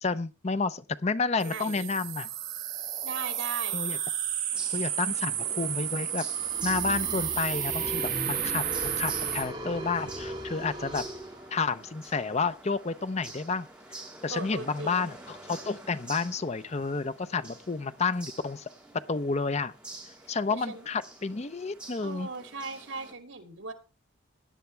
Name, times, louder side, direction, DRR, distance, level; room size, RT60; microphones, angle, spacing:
voice 1, 0.0-2.3 3.7-4.0 4.7-6.2 6.6-11.1 11.5-13.7 14.2-18.7 19.1-19.7 20.3-22.3, left 4 dB, 35° left, 13 dB, 0.6 m, -30 dB
sound 1, 1.4-9.4, right 10 dB, 40° right, 5.1 m, -32 dB
voice 2, 1.4-1.9 3.0-3.8 14.3-15.1 20.5-20.9 22.0-23.7, right 4 dB, 70° right, 6 dB, 2.8 m, -38 dB
sound 2, 4.5-23.1, right 2 dB, 5° right, 3.4 m, -48 dB
sound 3, 6.0-11.9, equal, 20° right, 3.4 m, -38 dB
17.5 x 10.5 x 3.4 m, 0.30 s
head